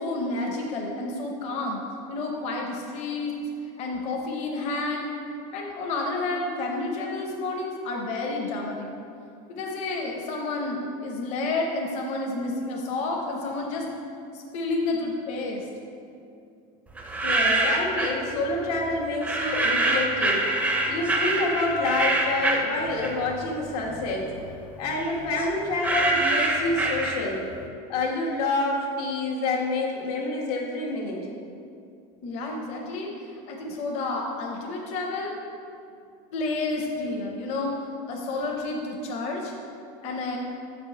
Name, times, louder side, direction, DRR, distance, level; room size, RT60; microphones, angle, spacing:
voice 1, 0.0-1.8 2.1-3.3 3.8-5.1 5.5-8.9 9.5-13.9 14.3-15.7 32.2-35.3 36.3-37.8 38.1-39.5 40.0-40.4, left 2 dB, 35° left, 0 dB, 0.6 m, -30 dB
voice 2, 17.0-20.5 20.9-24.3 24.8-27.5 27.9-31.2, left 2 dB, 90° left, -2 dB, 1.5 m, -27 dB
sound 1, 17.0-18.2 19.2-23.4 23.8-27.5, right 2 dB, 5° right, 0.4 m, -25 dB
6.7 x 5.1 x 4.6 m, 2.5 s
cardioid pair, 175°, 19 cm